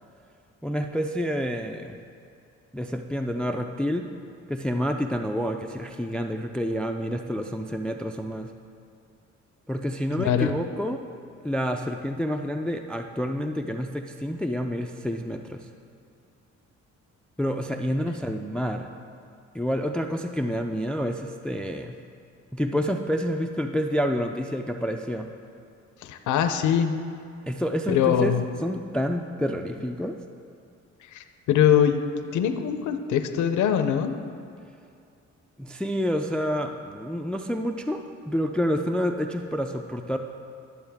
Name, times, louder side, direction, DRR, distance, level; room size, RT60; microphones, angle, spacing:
voice 1, 0.6-2.0 2.7-4.1 4.5-8.5 9.7-11.0 11.4-15.7 17.4-18.9 19.5-21.9 22.5-25.3 27.4-28.4 28.6-30.2 35.6-40.2, equal, 5° left, 5 dB, 0.3 m, -28 dB
voice 2, 10.2-10.5 26.0-26.9 27.9-28.4 31.1-34.2, left 9 dB, 75° left, 7 dB, 0.6 m, -23 dB
12.0 x 7.0 x 3.5 m, 2.5 s
cardioid pair, 90°, 30 cm